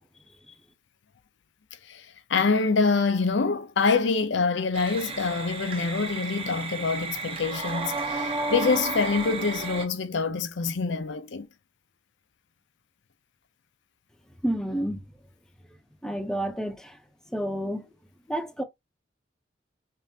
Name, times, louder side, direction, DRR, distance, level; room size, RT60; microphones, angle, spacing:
voice 1, 1.9-11.5, left 4 dB, 75° left, 0.6 m, -26 dB
sound 1, 4.7-9.8, right 3 dB, 30° right, 0.8 m, -32 dB
voice 2, 14.4-15.0 16.0-17.0 17.3-17.9 18.3-18.6, right 1 dB, 5° left, 0.6 m, -29 dB
5.3 x 2.6 x 2.7 m
head